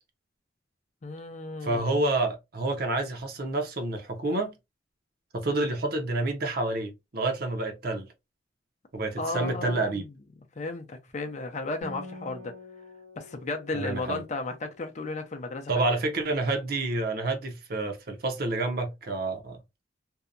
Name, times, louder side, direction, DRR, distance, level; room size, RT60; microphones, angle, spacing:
voice 1, 1.0-2.0 9.2-10.0 10.6-12.5 13.2-16.0, left 3 dB, 40° left, 0.5 m, -34 dB
voice 2, 1.6-4.6 5.3-8.1 8.9-10.1 13.7-14.2 15.7-19.6, right 2 dB, 55° right, 0.7 m, -29 dB
Acoustic guitar, 11.8-15.5, left 2 dB, 75° right, 1.2 m, -47 dB
2.7 x 2.2 x 2.4 m
head